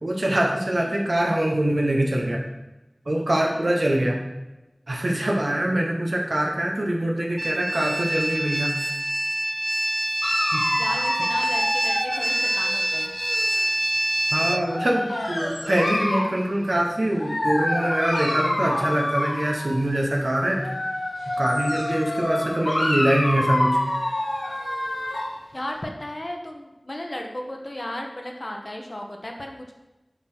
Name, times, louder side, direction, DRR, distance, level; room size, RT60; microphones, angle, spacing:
voice 1, 0.0-2.4 3.1-4.2 4.9-8.9 10.5-10.6 14.3-20.8 21.4-23.8, right 1 dB, 75° right, -1 dB, 0.9 m, -24 dB
sound 1, 7.4-14.6, right 1 dB, 40° right, 0.3 m, -25 dB
Dog, 10.2-13.6 14.4-16.4 17.2-19.8 20.5-25.4, left 1 dB, 80° left, 1.0 m, -27 dB
voice 2, 10.6-13.1 25.5-29.7, left 1 dB, 55° left, 1 dB, 1.0 m, -35 dB
7.2 x 3.9 x 5.9 m, 1.0 s
wide cardioid pair, 45°, 0 cm